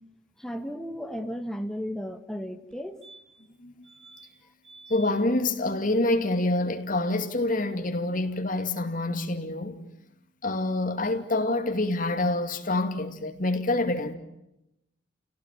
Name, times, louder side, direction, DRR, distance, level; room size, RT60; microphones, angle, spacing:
voice 1, 0.4-3.0, equal, 5° left, 1.5 m, -34 dB
sound 1, 2.7-2.8 3.0-3.5 3.8-4.3 4.6-5.1 7.5-7.6 7.8-7.9, right 3 dB, 70° right, 4.5 m, -50 dB
voice 2, 4.9-9.8 10.4-14.1, left 2 dB, 45° left, 2.5 m, -27 dB
30.0 x 18.0 x 9.3 m
head